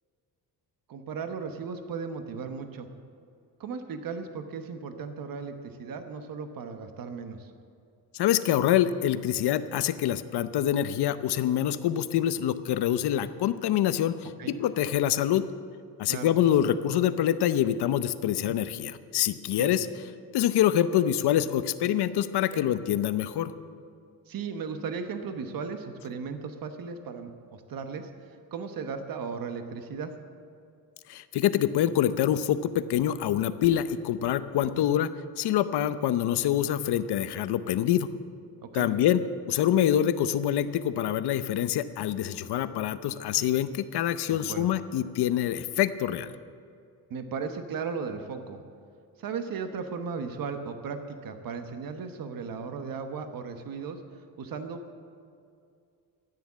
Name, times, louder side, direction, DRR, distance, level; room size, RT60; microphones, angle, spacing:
voice 1, 0.9-2.9 3.6-7.5 14.4-14.6 16.1-16.3 18.4-18.6 19.6-19.7 22.5-22.6 24.3-28.1 28.5-30.1 34.6-34.9 38.6-38.9 44.3-44.7 47.1-48.6 49.2-54.0 54.4-54.8, right 5 dB, 60° right, 7 dB, 1.1 m, -36 dB
voice 2, 8.1-15.4 16.0-19.9 20.3-23.5 31.1-35.1 35.4-38.1 38.7-39.2 39.5-46.3, left 11 dB, 80° left, 12 dB, 0.7 m, -25 dB
13.5 x 9.7 x 7.3 m, 2.4 s
cardioid pair, 135°, 39 cm